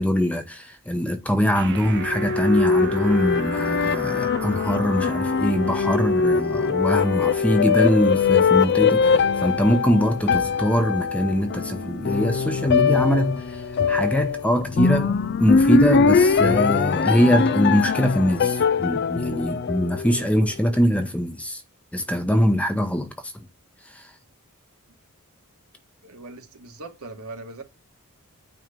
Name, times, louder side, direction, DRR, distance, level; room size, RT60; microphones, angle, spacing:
voice 1, 0.0-13.6 13.9-21.6 21.9-23.1 23.9-24.1, equal, 5° left, 0.8 m, -22 dB
sound 1, 1.6-15.5, right 4 dB, 55° right, 0.9 m, -38 dB
sound 2, 1.8-20.4, left 5 dB, 50° left, 0.4 m, -22 dB
voice 2, 26.0-27.6, right 2 dB, 75° right, 1.7 m, -40 dB
9.2 x 3.2 x 5.1 m
head